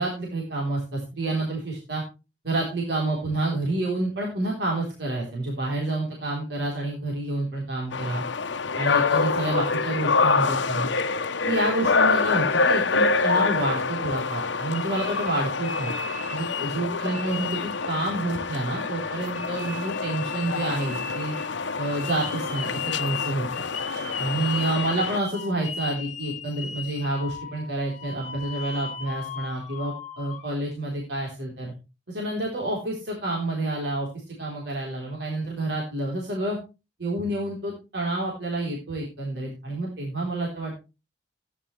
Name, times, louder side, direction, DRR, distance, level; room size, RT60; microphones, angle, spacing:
voice 1, 0.0-2.0 2.4-8.2 8.8-10.9 11.4-15.9 16.3-21.3 21.8-23.5 24.2-31.7 32.1-36.6 37.0-40.7, right 2 dB, 65° right, -2 dB, 3.8 m, -29 dB
sound 1, 7.9-25.2, left 4 dB, 75° left, 0.9 m, -26 dB
sound 2, 14.7-16.8 17.1-30.5, left 7 dB, 40° left, 1.7 m, -37 dB
15.0 x 10.5 x 3.3 m, 0.29 s
head